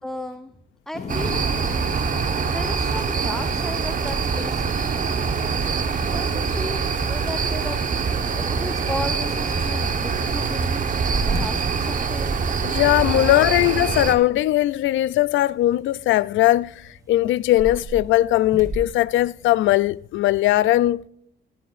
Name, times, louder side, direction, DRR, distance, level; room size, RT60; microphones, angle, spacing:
voice 1, 0.0-0.5 0.9-1.5 2.4-4.9 5.5-8.0 8.3-10.9 11.2-12.4 13.0-13.4, left 1 dB, ahead, 0.7 m, -34 dB
sound 1, 0.9-10.7, left 5 dB, 35° left, 1.1 m, -40 dB
sound 2, 1.1-14.1, right 5 dB, 40° right, 1.1 m, -24 dB
voice 2, 12.6-21.0, left 15 dB, 75° left, 0.4 m, -19 dB
sound 3, 13.7-20.1, right 2 dB, 15° right, 2.6 m, -38 dB
17.5 x 10.5 x 2.5 m
cardioid pair, 90°, 20 cm